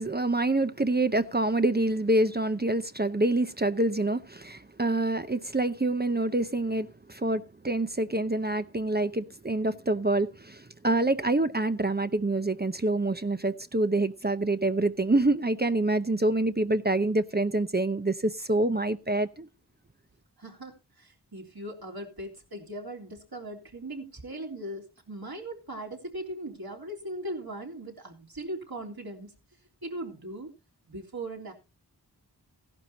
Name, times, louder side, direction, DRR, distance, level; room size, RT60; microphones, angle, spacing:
voice 1, 0.0-19.5, right 2 dB, 25° right, 0.8 m, -26 dB
voice 2, 20.4-29.3 29.8-30.5 30.9-31.5, right 1 dB, 65° right, 3.5 m, -39 dB
16.0 x 11.5 x 2.8 m
wide cardioid pair, 40°, 40 cm